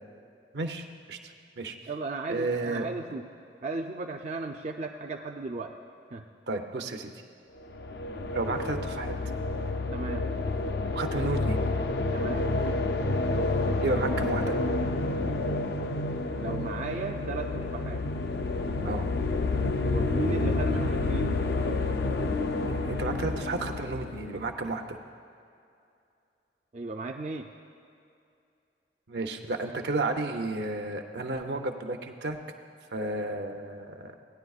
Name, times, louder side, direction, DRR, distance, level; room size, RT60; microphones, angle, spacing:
voice 1, 0.5-1.2 1.6-1.8 2.3-2.9 6.5-7.1 8.3-9.1 10.9-11.6 13.8-14.5 18.8-19.1 22.6-25.0 29.1-32.4 32.9-34.1, right 2 dB, 70° right, 4 dB, 0.7 m, -32 dB
voice 2, 1.9-3.3 3.6-5.7 6.1-6.3 9.9-10.3 12.1-12.5 16.4-18.0 19.8-21.4 26.7-27.5, right 3 dB, 40° right, 2 dB, 0.4 m, -35 dB
sound 1, 7.6-24.6, left 2 dB, 65° left, 0.5 m, -29 dB
17.5 x 9.8 x 2.4 m, 2.6 s
head